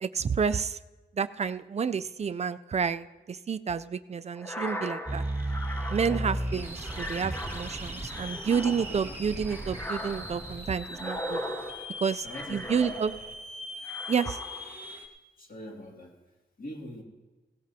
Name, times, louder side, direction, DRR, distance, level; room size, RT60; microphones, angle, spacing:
voice 1, 0.0-0.8 1.1-5.2 5.9-11.4 12.0-13.1 14.1-14.4, right 6 dB, 35° right, 13 dB, 0.4 m, -30 dB
sound 1, 4.4-13.4 13.8-14.9, left 1 dB, 10° left, 0.8 m, -39 dB
sound 2, 5.1-15.1, right 1 dB, 10° right, 1.8 m, -37 dB
voice 2, 12.2-13.0 15.4-16.2 16.6-17.0, left 1 dB, 50° left, -1 dB, 2.4 m, -42 dB
17.5 x 17.0 x 2.8 m, 1.2 s
wide cardioid pair, 145°, 19 cm